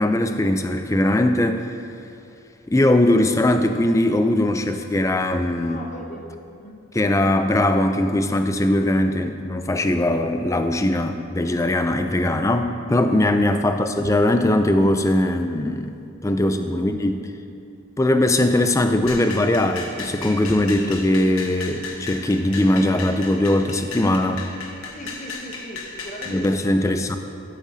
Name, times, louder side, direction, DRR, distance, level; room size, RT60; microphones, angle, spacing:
voice 1, 0.0-1.8 2.7-5.8 6.9-16.0 16.2-17.2 18.0-24.5 26.3-27.2, left 1 dB, 15° left, 7 dB, 0.3 m, -20 dB
voice 2, 5.6-6.8 13.6-14.0 16.2-17.0 24.9-27.1, left 1 dB, 35° left, 1 dB, 0.8 m, -39 dB
sound 1, 19.1-26.4, left 4 dB, 80° left, 1.1 m, -35 dB
13.0 x 8.6 x 2.7 m, 2.5 s
head